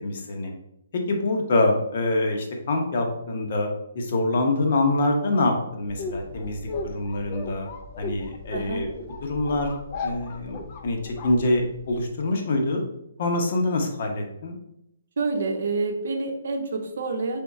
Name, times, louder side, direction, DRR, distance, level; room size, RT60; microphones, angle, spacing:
voice 1, 0.0-0.5 1.1-3.7 3.9-7.7 8.0-8.9 9.2-9.8 10.0-12.9 13.2-14.6, left 2 dB, 40° left, 3 dB, 0.8 m, -25 dB
sound 1, 5.8-12.1, left 3 dB, 25° left, 0.4 m, -36 dB
voice 2, 8.5-8.8 15.2-17.4, right 3 dB, 55° right, 5 dB, 0.7 m, -28 dB
3.6 x 3.6 x 4.0 m, 0.81 s
hypercardioid pair, 175°, 0 cm